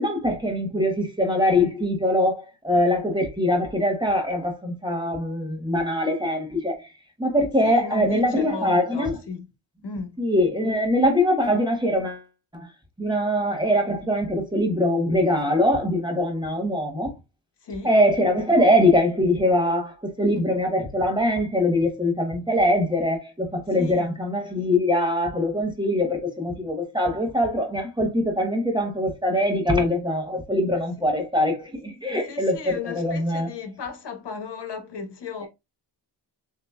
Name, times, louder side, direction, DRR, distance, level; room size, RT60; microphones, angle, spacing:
voice 1, 0.0-6.8 7.2-9.2 10.2-12.2 12.5-12.7 13.0-17.1 17.8-33.5, left 1 dB, 10° right, 1.0 m, -23 dB
voice 2, 7.6-9.5 9.8-10.2 17.6-18.0 23.8-24.2 32.2-35.5, left 5 dB, 65° left, 1.2 m, -35 dB
6.7 x 2.8 x 2.2 m
wide cardioid pair, 170°, 44 cm